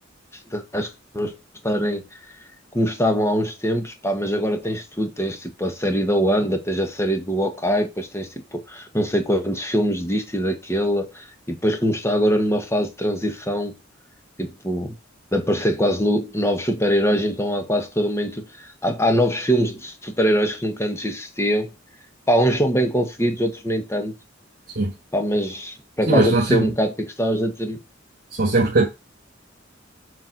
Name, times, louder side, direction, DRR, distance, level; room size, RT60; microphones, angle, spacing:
voice 1, 0.5-1.3 1.6-2.0 2.7-13.7 14.4-14.9 15.3-21.7 22.3-24.1 25.1-27.8, equal, 15° left, 1.6 m, -23 dB
voice 2, 26.1-26.7 28.4-28.9, right 2 dB, 50° right, 1.6 m, -19 dB
7.5 x 4.7 x 6.0 m
head